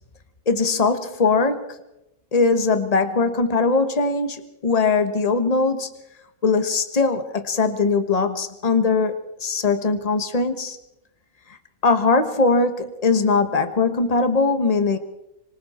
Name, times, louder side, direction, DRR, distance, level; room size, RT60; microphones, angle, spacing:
voice 1, 0.5-1.7 2.3-5.9 6.4-10.8 11.8-15.0, left 4 dB, 30° left, 8 dB, 1.3 m, -20 dB
26.0 x 25.5 x 4.4 m, 0.88 s
omnidirectional pair, 1.5 m